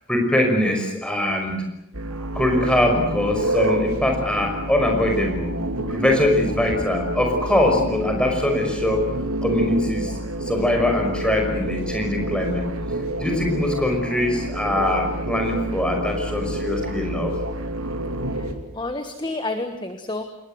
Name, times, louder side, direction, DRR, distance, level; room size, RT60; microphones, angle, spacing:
voice 1, 0.1-1.6 2.3-5.5 5.9-9.0 9.4-12.7 13.2-17.3, left 1 dB, 5° left, 2 dB, 5.5 m, -22 dB
sound 1, 1.9-18.5, right 1 dB, 75° right, 3.0 m, -28 dB
voice 2, 18.3-20.2, left 2 dB, 20° left, 7 dB, 1.4 m, -30 dB
27.5 x 21.0 x 8.0 m, 0.82 s
head